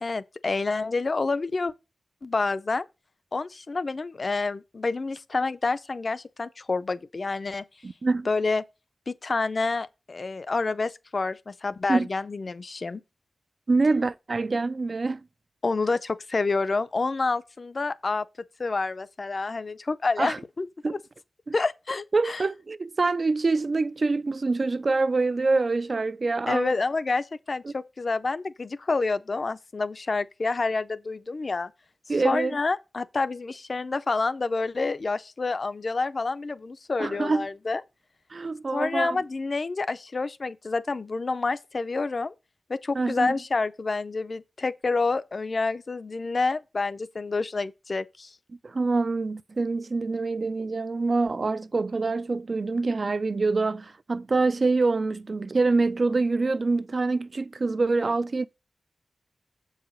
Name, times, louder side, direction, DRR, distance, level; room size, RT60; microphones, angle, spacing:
voice 1, 0.0-1.7 2.2-2.9 3.3-7.6 8.3-8.6 9.1-13.0 15.6-18.3 18.6-21.0 21.5-22.4 26.5-31.7 32.2-37.8 38.7-42.3 42.7-48.3, left 3 dB, 40° left, 0.5 m, -28 dB
voice 2, 7.8-8.3 11.9-12.1 13.7-15.2 20.2-20.4 20.8-21.0 21.5-21.6 22.1-26.7 27.6-27.7 32.1-32.6 37.0-37.5 38.3-39.2 42.9-43.3 48.6-58.5, right 3 dB, 40° right, 0.3 m, -25 dB
7.3 x 4.8 x 5.6 m
wide cardioid pair, 140°, 0 cm